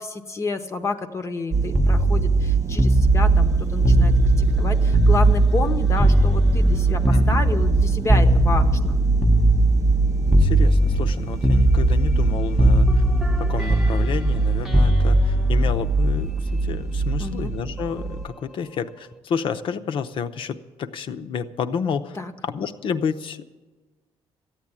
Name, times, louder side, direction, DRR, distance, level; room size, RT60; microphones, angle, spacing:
voice 1, 0.0-9.0 17.2-17.5 22.1-22.3, left 3 dB, 30° left, 7 dB, 0.7 m, -30 dB
sound 1, 1.5-18.3, right 4 dB, 30° right, 0.4 m, -22 dB
sound 2, 1.7-5.7 6.0-10.0 10.3-11.2 11.4-12.3 12.6-16.6 17.8-18.0, equal, ahead, 0.8 m, -20 dB
voice 2, 7.1-7.4 10.3-13.0 13.4-22.2 22.4-23.4, left 6 dB, 60° left, 8 dB, 0.7 m, -30 dB
14.0 x 8.9 x 9.6 m, 1.3 s
cardioid pair, 150°, 10 cm